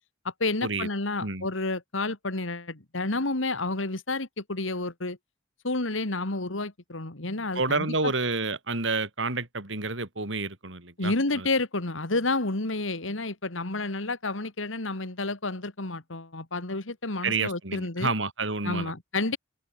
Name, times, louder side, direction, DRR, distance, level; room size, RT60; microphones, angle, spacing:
voice 1, 0.2-5.2 5.6-8.1 11.0-18.1 18.6-19.4, left 2 dB, 90° left, 2.5 m, -30 dB
voice 2, 7.6-11.5 17.2-18.9, right 3 dB, 75° right, 5.1 m, -29 dB
open air
head